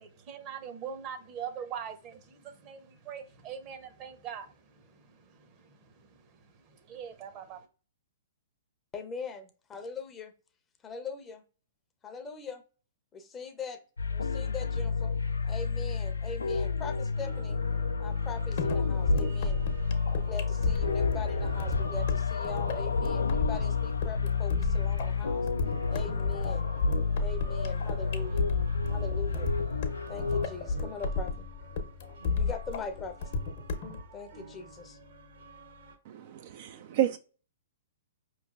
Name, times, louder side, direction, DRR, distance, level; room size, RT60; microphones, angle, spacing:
voice 1, 0.0-7.7, right 8 dB, 35° right, 0.8 m, -43 dB
voice 2, 8.9-10.3 10.8-11.4 12.0-12.6 13.1-13.8 14.1-15.1 15.5-17.6 18.0-19.6 20.1-25.5 25.9-26.7 27.2-28.4 28.9-29.5 30.1-31.5 32.4-33.3 34.1-35.0, left 4 dB, 20° left, 0.6 m, -41 dB
sound 1, 14.0-30.4, left 5 dB, 85° left, 0.4 m, -30 dB
sound 2, 17.1-36.0, right 2 dB, 65° right, 1.1 m, -51 dB
sound 3, 18.6-34.0, left 3 dB, 55° left, 0.8 m, -32 dB
voice 3, 36.1-37.2, right 12 dB, 50° right, 0.3 m, -30 dB
5.0 x 3.1 x 2.4 m
hypercardioid pair, 120°, 0 cm